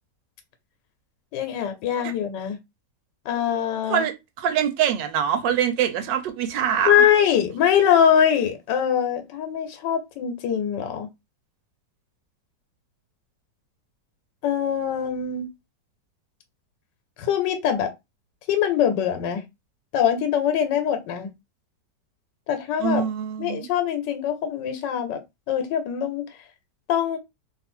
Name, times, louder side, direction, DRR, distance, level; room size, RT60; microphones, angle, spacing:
voice 1, 1.3-2.6 3.3-4.0 6.8-11.1 14.4-15.5 17.2-17.9 18.5-19.4 19.9-21.3 22.5-23.0 23.4-25.2 25.5-26.3 26.9-27.2, left 9 dB, 80° left, 1.4 m, -23 dB
voice 2, 3.9-7.0 22.8-23.7, right 9 dB, 85° right, 1.4 m, -24 dB
3.1 x 2.5 x 4.3 m
omnidirectional pair, 1.9 m